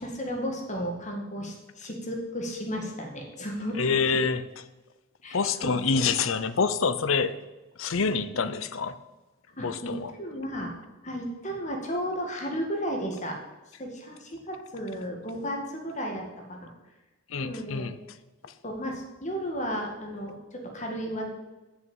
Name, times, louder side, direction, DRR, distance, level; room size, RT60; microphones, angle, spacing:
voice 1, 0.0-3.8 5.2-6.0 8.3-8.5 9.6-9.9 10.2-10.7 11.0-13.4 13.8-16.7 17.4-17.9 18.6-21.3, equal, 35° left, 1 dB, 1.9 m, -34 dB
voice 2, 3.8-4.4 5.3-7.4 7.8-8.9 9.6-10.1 17.3-17.9 18.4-18.5, left 5 dB, 75° left, 13 dB, 0.7 m, -26 dB
8.6 x 7.1 x 8.8 m, 1.1 s
head